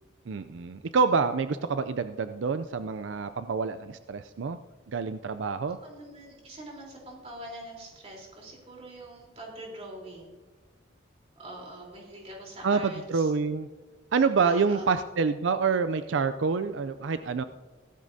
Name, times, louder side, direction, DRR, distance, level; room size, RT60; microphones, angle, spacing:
voice 1, 0.3-4.6 4.9-5.8 12.6-13.7 14.1-17.4, right 5 dB, 85° right, 11 dB, 0.4 m, -27 dB
voice 2, 5.8-10.3 11.4-13.3 14.4-14.9, right 1 dB, 35° right, -2 dB, 3.6 m, -43 dB
16.0 x 13.5 x 2.7 m, 1.3 s
head